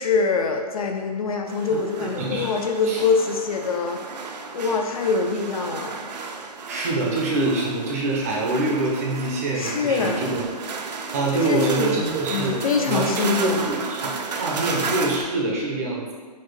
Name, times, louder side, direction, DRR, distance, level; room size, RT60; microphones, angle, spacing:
voice 1, 0.0-4.0 4.5-6.1 9.5-10.2 11.3-12.0 12.3-13.7, left 4 dB, 60° left, 3 dB, 0.4 m, -24 dB
sound 1, 1.5-15.2, right 4 dB, 80° right, 0.4 m, -33 dB
voice 2, 1.7-2.5 2.8-3.0 6.7-10.5 11.1-16.1, right 2 dB, 25° right, -2 dB, 0.4 m, -25 dB
3.9 x 2.1 x 3.2 m, 1.5 s
hypercardioid pair, 155°, 21 cm